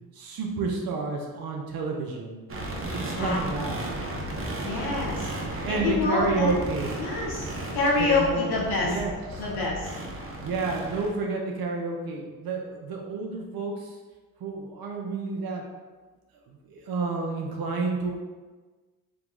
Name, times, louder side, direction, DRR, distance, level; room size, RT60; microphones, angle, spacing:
voice 1, 0.1-2.4 3.0-3.8 5.6-6.9 8.0-8.5 8.8-9.4 10.4-14.0 14.4-15.6 16.5-18.1, right 3 dB, 70° right, 0 dB, 0.8 m, -30 dB
sound 1, 2.5-11.1, right 1 dB, 35° right, 0.8 m, -35 dB
voice 2, 2.9-3.4 3.7-3.8 4.6-5.3 5.7-6.5 7.0-7.5 7.7-9.0 9.4-9.9, left 3 dB, 80° left, -3 dB, 1.2 m, -27 dB
3.7 x 3.0 x 3.7 m, 1.3 s
cardioid pair, 85°, 37 cm